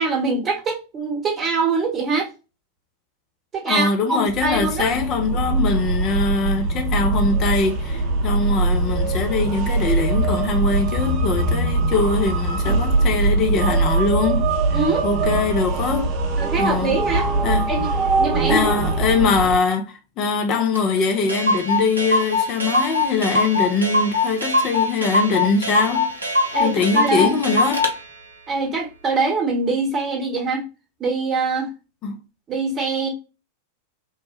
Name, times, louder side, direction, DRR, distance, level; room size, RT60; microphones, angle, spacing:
voice 1, 0.0-2.3 3.5-4.9 14.7-15.1 16.4-17.3 17.7-17.9 18.2-18.7 26.5-27.3 28.5-30.6 31.0-31.7 32.5-33.1, right 4 dB, 25° right, 1.0 m, -23 dB
voice 2, 3.7-16.1 16.6-16.9 17.4-17.7 18.5-26.1 26.6-27.9 32.0-32.2, left 4 dB, 35° left, 0.4 m, -22 dB
sound 1, 4.3-19.6, right 3 dB, 40° right, 0.6 m, -22 dB
Clock, 20.7-20.8 21.0-21.1 21.3-27.9, left 2 dB, 85° right, 0.5 m, -22 dB
2.9 x 2.1 x 3.0 m
figure-of-eight pair, 90°, 0 cm